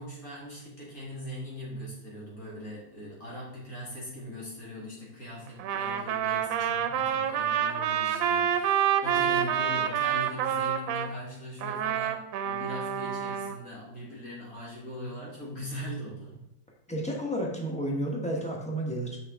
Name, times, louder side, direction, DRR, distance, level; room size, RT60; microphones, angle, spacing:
voice 1, 0.0-16.3, equal, 45° left, -4 dB, 2.2 m, -40 dB
Trumpet, 5.6-11.1 11.6-13.6, right 9 dB, 80° right, 1.3 m, -28 dB
voice 2, 16.9-19.2, right 1 dB, 5° left, -2 dB, 0.8 m, -31 dB
6.4 x 6.3 x 3.6 m, 0.84 s
omnidirectional pair, 2.1 m